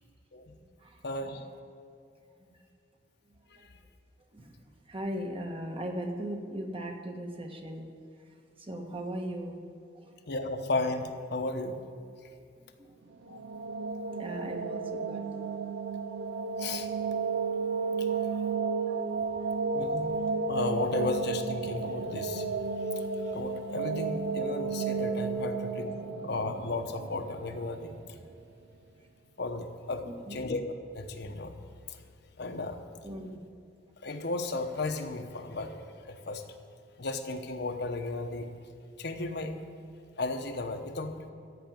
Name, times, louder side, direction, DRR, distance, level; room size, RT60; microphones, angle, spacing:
voice 1, 1.0-1.4 10.3-11.8 13.3-13.4 16.6-16.9 18.0-18.1 18.3-18.4 19.7-22.5 22.9-23.1 23.3-26.0 26.2-27.9 29.4-30.6 30.9-31.6 31.9-32.0 32.4-32.8 34.0-36.4 37.0-38.5 39.0-39.6 40.2-41.2, left 2 dB, 60° left, 6 dB, 1.0 m, -34 dB
voice 2, 4.9-7.9 8.6-9.6 9.9-10.1 12.8-12.9 14.2-15.4 18.1-18.4 18.9-19.0 30.1-30.4 33.0-33.4, right 1 dB, 30° right, 3 dB, 1.3 m, -38 dB
sound 1, 13.1-28.1, right 4 dB, 65° right, 0.6 m, -33 dB
14.0 x 6.0 x 9.3 m, 2.5 s
head